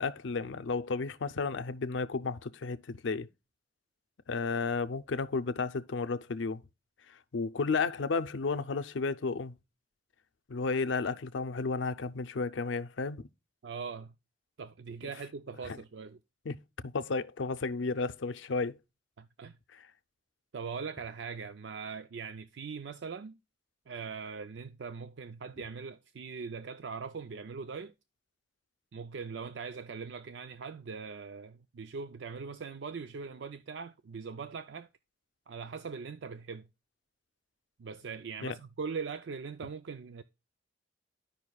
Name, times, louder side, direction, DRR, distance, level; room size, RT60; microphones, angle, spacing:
voice 1, 0.0-3.3 4.3-6.6 7.1-9.5 10.5-13.3 15.6-15.8 16.5-16.6 16.8-18.8 19.7-19.9 38.4-38.5, left 4 dB, 85° left, 0.5 m, -33 dB
voice 2, 13.6-14.1 14.6-16.2 19.2-19.6 20.5-23.3 23.9-27.9 28.9-34.9 35.5-36.7 37.8-40.2, right 5 dB, 65° right, 0.4 m, -41 dB
14.0 x 5.3 x 2.3 m
head